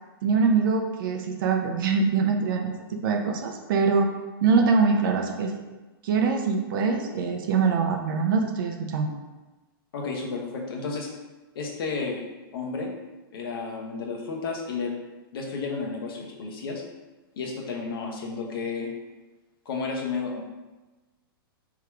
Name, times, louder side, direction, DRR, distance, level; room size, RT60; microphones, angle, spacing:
voice 1, 0.2-4.1 4.4-5.6 6.0-9.1, right 5 dB, 65° right, 4 dB, 0.7 m, -23 dB
voice 2, 9.9-11.1 11.5-12.2 12.5-12.9 13.3-15.0 15.3-16.8 17.4-18.9 19.6-20.4, left 4 dB, 75° left, -1 dB, 1.1 m, -32 dB
3.6 x 3.0 x 4.6 m, 1.2 s
hypercardioid pair, 145°, 12 cm